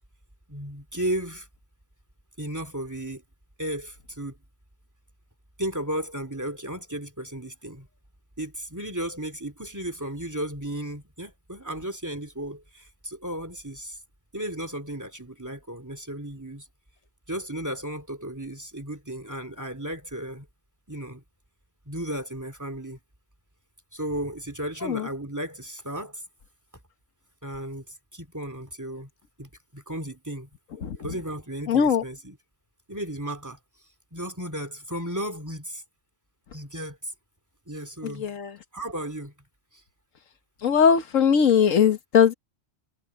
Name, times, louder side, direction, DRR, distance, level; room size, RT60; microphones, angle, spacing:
voice 1, 0.5-1.5 2.4-3.2 3.6-4.3 5.6-7.9 8.4-14.0 14.3-16.6 17.3-20.5 20.9-21.2 21.9-23.0 23.9-26.2 27.4-27.8 28.1-29.1 29.4-30.5 31.0-32.4 32.9-33.6 34.1-35.8 36.5-37.1 37.7-38.3 38.7-39.3, right 1 dB, 15° right, 2.7 m, -34 dB
voice 2, 31.7-32.0 38.0-38.5 40.6-42.3, left 7 dB, 90° left, 1.6 m, -20 dB
omnidirectional pair, 1.3 m